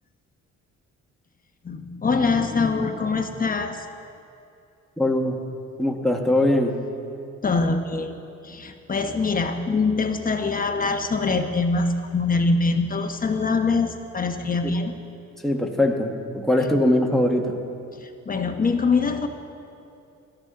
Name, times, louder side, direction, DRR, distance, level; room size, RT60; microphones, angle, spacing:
voice 1, 1.6-3.9 7.4-8.2 8.4-14.9 18.0-19.3, left 4 dB, 30° left, 5 dB, 1.1 m, -24 dB
voice 2, 5.0-5.4 5.8-6.8 14.6-14.7 15.4-17.6, left 1 dB, ahead, 1 dB, 1.4 m, -21 dB
17.0 x 13.0 x 3.8 m, 2.6 s
cardioid pair, 90°, 30 cm